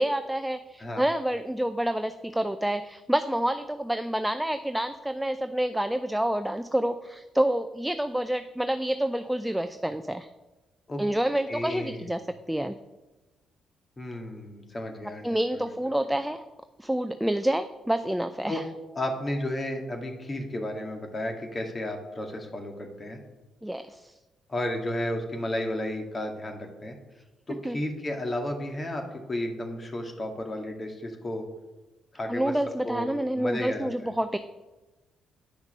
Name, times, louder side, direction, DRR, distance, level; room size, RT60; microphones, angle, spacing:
voice 1, 0.0-10.3 11.0-12.2 12.5-12.8 15.2-16.4 16.8-18.6 23.6-24.1 27.5-27.8 32.3-34.4, right 1 dB, 5° right, 9 dB, 0.5 m, -28 dB
voice 2, 11.5-12.1 14.0-15.4 18.5-18.6 18.9-23.2 24.5-27.0 27.5-31.5 32.1-32.6 32.8-33.1 33.3-34.1, left 1 dB, 35° left, 3 dB, 2.0 m, -33 dB
9.2 x 5.9 x 5.5 m, 1.1 s
hypercardioid pair, 45°, 0 cm